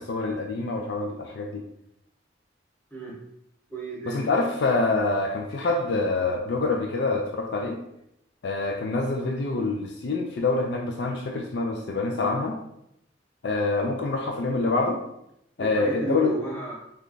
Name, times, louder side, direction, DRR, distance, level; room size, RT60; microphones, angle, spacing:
voice 1, 0.0-1.6 4.0-7.8 8.4-12.6 13.4-15.0 15.6-16.3, left 3 dB, 60° left, 2 dB, 0.4 m, -26 dB
voice 2, 3.7-4.5 15.6-16.7, right 2 dB, 10° left, -7 dB, 1.1 m, -33 dB
3.2 x 2.3 x 3.8 m, 0.79 s
head